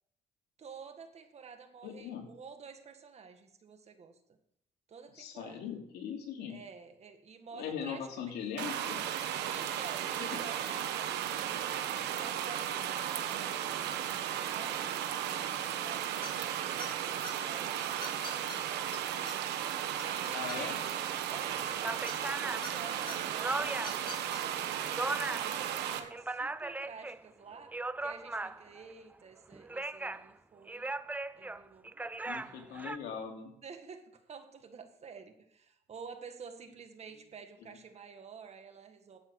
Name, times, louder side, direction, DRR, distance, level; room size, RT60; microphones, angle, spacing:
voice 1, 0.6-4.2 4.9-5.6 6.5-8.2 9.5-19.0 20.0-24.9 25.4-27.7 28.0-31.0 31.4-32.9 33.6-39.2, right 5 dB, 40° right, 6 dB, 1.9 m, -50 dB
voice 2, 1.8-2.2 5.1-6.6 7.5-9.0 10.3-10.4 20.3-20.7 32.2-33.5 37.6-37.8, left 7 dB, 75° left, 1 dB, 3.1 m, -40 dB
sound 1, 8.6-26.0, right 10 dB, 80° right, 1.3 m, -35 dB
sound 2, 16.2-16.5 16.8-17.3 18.0-18.6 18.9-19.0 19.3-19.4 19.7-20.9 22.1-22.7 23.1-23.2 23.8-24.4, left 3 dB, 30° left, 3.5 m, -43 dB
sound 3, 21.3-21.4 21.8-24.1 24.5-25.6 25.9-27.2 27.5-28.8 29.5-30.3 30.7-33.0, right 2 dB, 10° right, 0.4 m, -38 dB
12.5 x 8.8 x 4.8 m, 0.74 s
cardioid pair, 110°, 17 cm